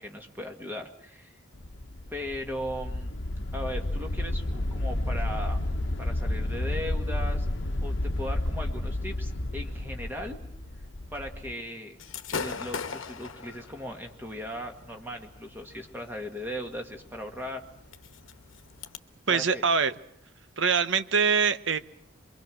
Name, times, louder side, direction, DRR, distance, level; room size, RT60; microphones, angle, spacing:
voice 1, 0.0-1.4 2.1-3.1 3.5-5.7 6.0-7.5 7.8-10.4 11.1-12.0 12.3-17.6 19.3-19.6, equal, 10° right, 3 dB, 1.8 m, -38 dB
sound 1, 1.5-11.5, left 1 dB, 65° left, 1.0 m, -31 dB
Gunshot gunfire / Fireworks, 12.0-19.0, left 5 dB, 85° left, 1.1 m, -41 dB
voice 2, 19.3-19.9 20.6-21.8, right 6 dB, 70° right, 12 dB, 0.9 m, -24 dB
25.0 x 23.0 x 6.3 m, 0.70 s
head